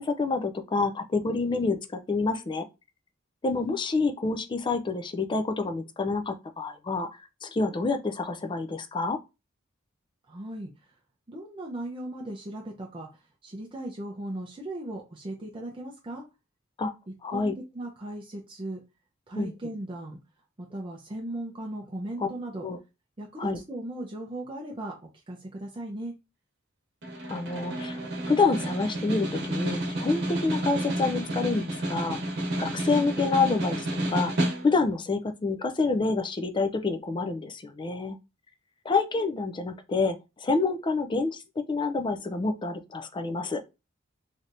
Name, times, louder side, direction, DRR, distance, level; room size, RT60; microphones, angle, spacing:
voice 1, 0.0-1.8 2.1-2.6 3.4-7.1 7.4-9.2 16.8-16.9 17.2-17.5 19.4-19.5 22.2-22.3 22.6-22.8 23.4-23.6 27.3-32.2 32.6-34.3 34.6-38.2 38.8-41.4 41.7-43.6, left 3 dB, 25° left, 0.4 m, -27 dB
voice 2, 10.3-10.7 11.3-16.2 17.1-18.8 19.3-20.2 20.6-22.6 23.2-26.1, right 1 dB, 25° right, 0.5 m, -37 dB
Snare drum, 27.0-35.0, right 1 dB, 60° right, 1.1 m, -30 dB
3.3 x 2.7 x 2.5 m
head